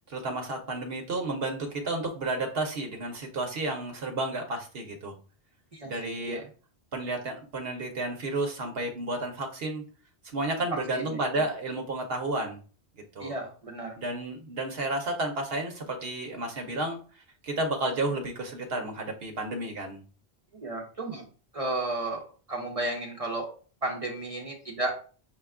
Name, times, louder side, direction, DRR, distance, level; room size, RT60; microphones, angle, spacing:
voice 1, 0.1-5.1 5.8-6.5 6.9-9.8 10.3-12.6 13.1-13.3 14.0-17.0 17.4-20.0, right 2 dB, 65° right, 3 dB, 1.0 m, -31 dB
voice 2, 5.7-6.4 10.9-11.2 13.2-14.0 20.5-21.2 21.5-23.5 23.8-25.0, right 2 dB, 35° right, 0 dB, 0.8 m, -33 dB
6.3 x 2.3 x 3.5 m, 0.38 s
omnidirectional pair, 1.1 m